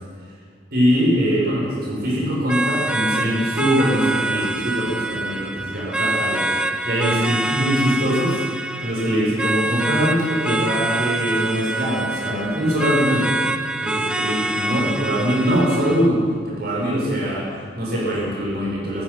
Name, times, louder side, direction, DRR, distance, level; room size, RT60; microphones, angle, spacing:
voice 1, 0.7-8.4 8.8-13.4 13.8-19.0, equal, 55° right, -5 dB, 7.7 m, -22 dB
sound 1, 2.5-16.1, right 2 dB, 5° right, 0.8 m, -25 dB
27.5 x 16.5 x 6.0 m, 2.1 s
head